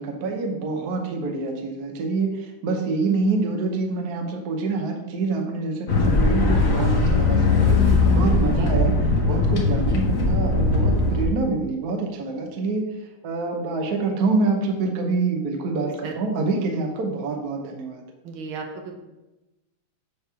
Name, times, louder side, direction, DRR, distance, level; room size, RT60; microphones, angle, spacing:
voice 1, 0.0-12.9 13.2-18.0, right 3 dB, 55° right, 2 dB, 1.2 m, -26 dB
sound 1, 5.9-11.3, left 3 dB, 55° left, 1.0 m, -19 dB
voice 2, 18.2-19.0, right 4 dB, 75° right, 2 dB, 1.6 m, -35 dB
6.9 x 3.3 x 5.6 m, 1.0 s
omnidirectional pair, 2.3 m